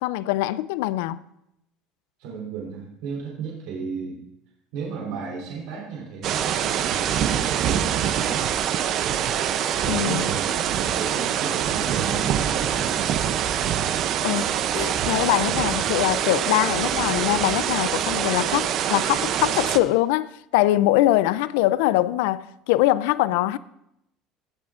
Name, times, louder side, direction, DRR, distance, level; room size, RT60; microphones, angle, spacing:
voice 1, 0.0-1.2 9.9-10.3 14.2-23.6, left 16 dB, 90° left, 0.3 m, -23 dB
voice 2, 2.2-4.3 4.7-7.1 7.5-8.8 9.8-13.3, right 5 dB, 75° right, 3.3 m, -34 dB
sound 1, 6.2-19.8, right 9 dB, 40° right, 0.5 m, -24 dB
17.0 x 8.5 x 2.5 m
cardioid pair, 165°, 0 cm